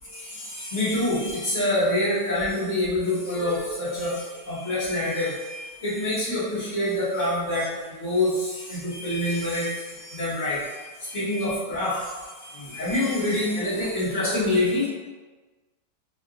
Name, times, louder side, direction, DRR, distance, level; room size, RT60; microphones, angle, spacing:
voice 1, 0.1-14.9, left 1 dB, 50° left, -9 dB, 1.5 m, -26 dB
5.6 x 2.5 x 2.4 m, 1.3 s
omnidirectional pair, 1.9 m